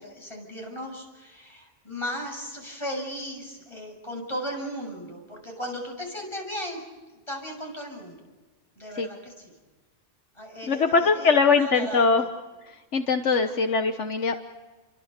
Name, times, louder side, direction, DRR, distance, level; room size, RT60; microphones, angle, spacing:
voice 1, 0.0-6.8 7.1-8.2 8.8-9.5 10.4-12.3 13.4-13.5, equal, 25° left, 1 dB, 7.1 m, -36 dB
voice 2, 10.7-12.3 12.7-14.4, left 4 dB, 75° left, 6 dB, 1.5 m, -22 dB
30.0 x 24.0 x 6.8 m, 1.2 s
omnidirectional pair, 1.2 m